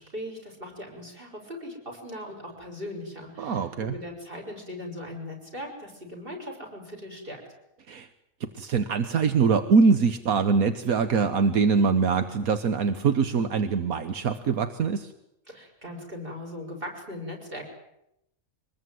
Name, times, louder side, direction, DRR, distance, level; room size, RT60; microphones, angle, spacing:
voice 1, 0.0-7.4 15.5-17.7, left 1 dB, 40° right, 3 dB, 6.5 m, -39 dB
voice 2, 3.4-3.9 7.9-8.1 8.4-15.1, right 5 dB, 80° right, 9 dB, 1.6 m, -23 dB
24.5 x 21.0 x 9.4 m, 0.83 s
omnidirectional pair, 1.5 m